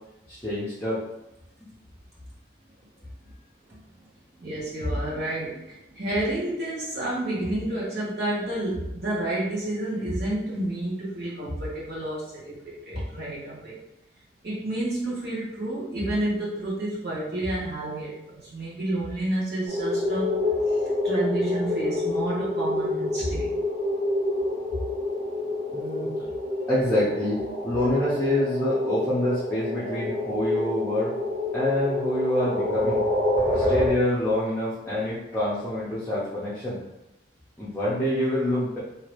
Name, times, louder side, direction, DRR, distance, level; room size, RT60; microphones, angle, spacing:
voice 1, 0.3-1.0 25.7-26.1 26.7-31.1 31.5-33.0 33.5-36.8 37.6-38.8, left 1 dB, 10° left, -11 dB, 0.8 m, -26 dB
voice 2, 4.4-13.8 14.4-20.3 20.7-23.5, right 1 dB, 55° right, -7 dB, 1.3 m, -30 dB
sound 1, 19.7-33.9, left 1 dB, 30° right, 1.5 m, -27 dB
2.8 x 2.8 x 3.2 m, 0.87 s
head